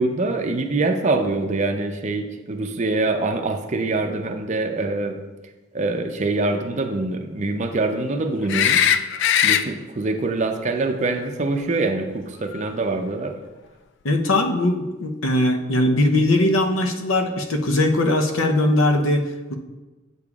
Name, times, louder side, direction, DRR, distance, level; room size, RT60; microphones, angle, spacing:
voice 1, 0.0-5.2 5.7-9.0 9.4-13.4, right 2 dB, 35° right, 5 dB, 0.5 m, -24 dB
sound 1, 8.5-9.6 12.5-12.6, left 9 dB, 60° left, 0.3 m, -19 dB
voice 2, 14.0-19.5, left 1 dB, 80° left, 4 dB, 0.7 m, -20 dB
8.3 x 6.8 x 2.4 m, 1.2 s
head